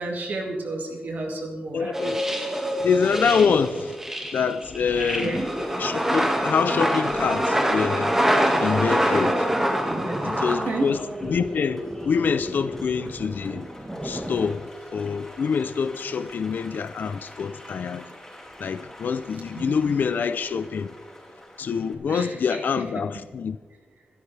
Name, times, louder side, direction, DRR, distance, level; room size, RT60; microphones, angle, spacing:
voice 1, 0.0-2.0 5.2-5.4 9.9-10.9 19.6-19.9 22.1-22.6, right 2 dB, 60° right, 1 dB, 2.3 m, -32 dB
voice 2, 1.7-2.2 2.8-4.0 4.3-5.4 5.8-8.1 8.6-9.5 10.2-13.7 14.0-18.0 18.6-20.9 21.6-23.6, left 6 dB, 65° left, 11 dB, 0.5 m, -25 dB
sound 1, 1.9-11.5 11.8-14.5, equal, 10° right, 1.9 m, -26 dB
Applause, 2.2-21.9, left 1 dB, 10° left, 4.6 m, -42 dB
25.5 x 13.0 x 3.4 m, 1.4 s
wide cardioid pair, 170°, 3 cm